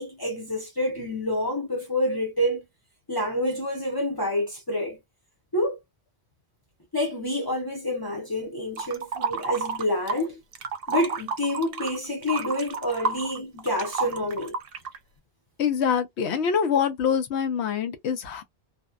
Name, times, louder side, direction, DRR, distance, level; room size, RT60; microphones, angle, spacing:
voice 1, 0.0-2.6 3.1-5.0 5.5-5.8 6.9-10.4 10.9-14.6, left 1 dB, 25° left, 0.6 m, -28 dB
sound 1, 8.8-10.3 10.5-15.0, right 4 dB, 65° right, 0.7 m, -30 dB
voice 2, 15.6-18.4, left 7 dB, 85° left, 0.9 m, -25 dB
2.6 x 2.1 x 2.3 m
omnidirectional pair, 1.1 m